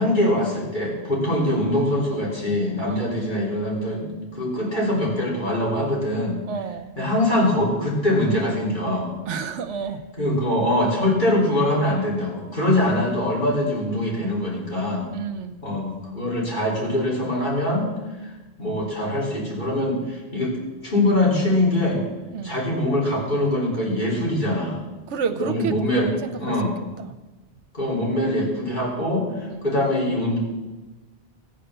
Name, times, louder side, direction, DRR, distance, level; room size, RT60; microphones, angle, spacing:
voice 1, 0.0-6.4 7.0-9.1 10.2-15.1 15.6-17.9 18.6-20.6 20.8-22.0 22.4-24.8 25.4-26.7 27.7-30.4, left 1 dB, 45° left, -4 dB, 3.9 m, -23 dB
voice 2, 6.5-6.9 9.3-10.0 15.1-15.6 22.3-22.6 25.1-26.6 27.0-27.2 29.5-29.6, right 6 dB, 90° right, 7 dB, 1.0 m, -30 dB
14.0 x 8.8 x 6.7 m, 1.1 s
omnidirectional pair, 1.2 m